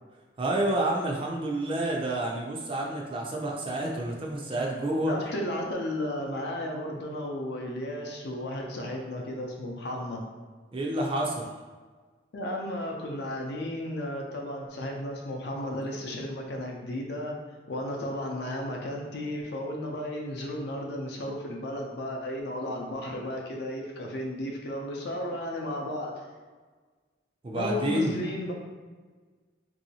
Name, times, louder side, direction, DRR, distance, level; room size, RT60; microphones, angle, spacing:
voice 1, 0.4-5.1 10.7-11.5 27.4-28.2, right 1 dB, 30° right, -1 dB, 0.4 m, -29 dB
voice 2, 5.1-10.2 12.3-17.4 17.7-26.1 27.5-28.5, left 1 dB, 60° left, 0 dB, 0.5 m, -34 dB
3.0 x 2.7 x 2.8 m, 1.4 s
head